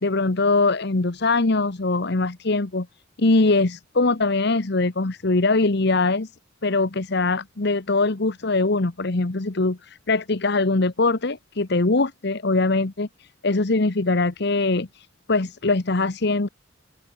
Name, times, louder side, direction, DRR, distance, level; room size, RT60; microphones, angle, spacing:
voice 1, 0.0-2.9 3.2-6.3 6.6-16.5, left 3 dB, 60° left, 1.1 m, -22 dB
open air
head